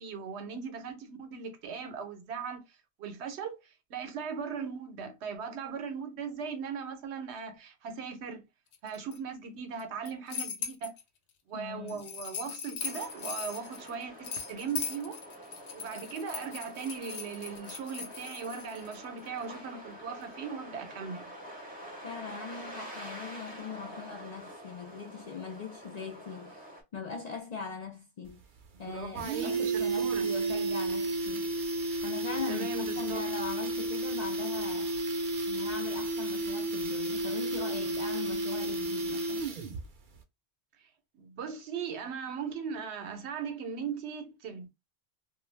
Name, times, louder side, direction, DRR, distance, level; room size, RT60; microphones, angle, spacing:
voice 1, 0.0-2.6 3.0-8.4 8.8-11.0 11.5-15.2 15.7-21.2 28.8-30.3 32.5-33.3 41.2-44.7, right 6 dB, 80° right, 1.0 m, -38 dB
sound 1, 8.7-9.2 9.8-11.0 11.9-19.0, left 7 dB, 85° left, 0.9 m, -39 dB
voice 2, 11.5-12.1 22.0-28.4 28.8-31.5 32.0-35.0 35.5-39.5, left 5 dB, 60° left, 0.4 m, -41 dB
sound 2, 12.8-26.8, equal, 10° right, 0.6 m, -47 dB
sound 3, 28.3-28.4 28.7-28.8 29.0-39.9 40.1-40.2, right 2 dB, 55° right, 0.6 m, -32 dB
2.3 x 2.2 x 3.2 m
omnidirectional pair, 1.1 m